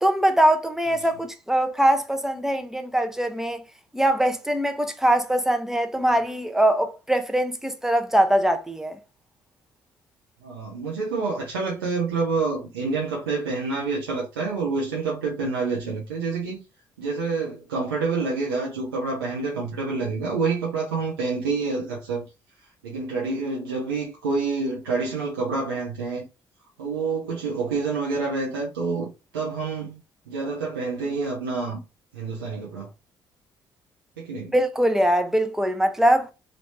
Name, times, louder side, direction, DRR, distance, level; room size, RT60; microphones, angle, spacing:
voice 1, 0.0-3.6 3.9-9.0 34.5-36.3, right 1 dB, 5° right, 0.7 m, -22 dB
voice 2, 10.4-16.6 17.0-22.3 22.8-26.2 26.8-30.0 30.3-31.8 32.1-32.9 34.2-34.5, right 4 dB, 90° right, 0.6 m, -27 dB
3.2 x 2.5 x 3.1 m
hypercardioid pair, 50°, 12 cm